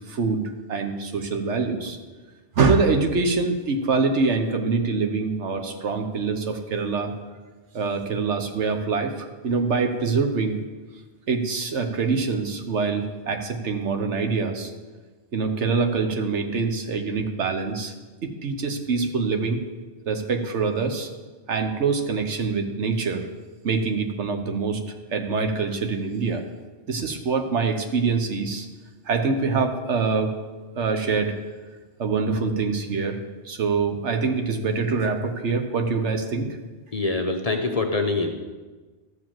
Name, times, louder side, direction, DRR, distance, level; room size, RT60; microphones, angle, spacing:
voice 1, 0.1-0.4 0.7-2.0 2.6-7.1 7.7-10.6 11.3-14.7 15.3-17.9 18.2-19.6 20.1-21.1 21.5-23.3 23.6-24.8 25.1-26.4 26.9-28.7 29.0-30.3 30.8-31.3 32.0-33.2 33.4-36.6, right 4 dB, 75° right, 6 dB, 1.3 m, -24 dB
voice 2, 36.9-38.3, left 3 dB, 35° left, 4 dB, 0.8 m, -24 dB
13.0 x 5.0 x 7.5 m, 1.3 s
omnidirectional pair, 1.2 m